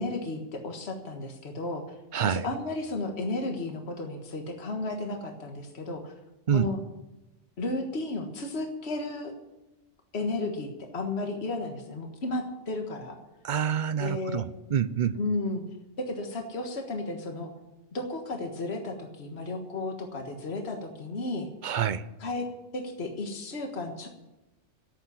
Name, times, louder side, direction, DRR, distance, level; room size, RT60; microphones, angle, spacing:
voice 1, 0.0-1.8 2.2-6.1 6.5-6.8 7.6-9.3 10.1-13.2 14.0-14.5 15.1-15.6 16.0-17.5 17.9-21.5 22.2-22.5 22.7-24.1, left 2 dB, 60° left, 3 dB, 1.8 m, -33 dB
voice 2, 2.1-2.4 6.5-6.7 13.4-15.2 21.6-22.1, right 8 dB, 50° right, 16 dB, 0.6 m, -27 dB
12.5 x 8.4 x 9.9 m, 0.98 s
omnidirectional pair, 1.2 m